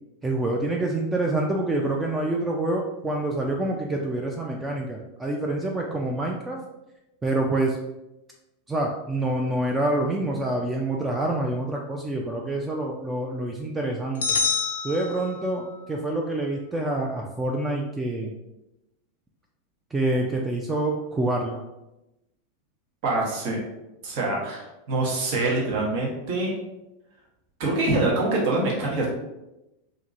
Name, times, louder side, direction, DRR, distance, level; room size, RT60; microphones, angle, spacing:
voice 1, 0.2-6.6 7.2-7.8 8.7-14.4 14.8-18.3 19.9-21.6, right 2 dB, 15° right, 0 dB, 0.3 m, -27 dB
sound 1, 14.2-15.8, left 5 dB, 75° left, 0.3 m, -27 dB
voice 2, 23.0-23.6 24.0-26.5 27.6-29.1, right 2 dB, 60° right, -3 dB, 0.9 m, -25 dB
2.8 x 2.5 x 2.5 m, 0.94 s
hypercardioid pair, 95°, 0 cm